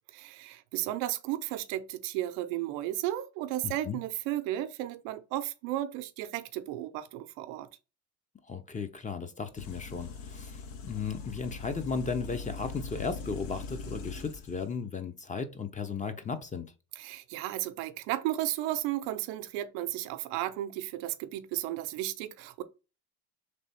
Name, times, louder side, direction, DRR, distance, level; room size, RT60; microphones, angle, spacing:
voice 1, 0.1-7.7 17.0-22.6, right 14 dB, 80° right, 0.6 m, -34 dB
voice 2, 3.6-4.0 8.5-16.7, left 5 dB, 20° left, 0.7 m, -35 dB
sound 1, 9.6-14.6, left 4 dB, 70° left, 1.0 m, -41 dB
3.4 x 3.0 x 4.2 m
supercardioid pair, 85°, 35 cm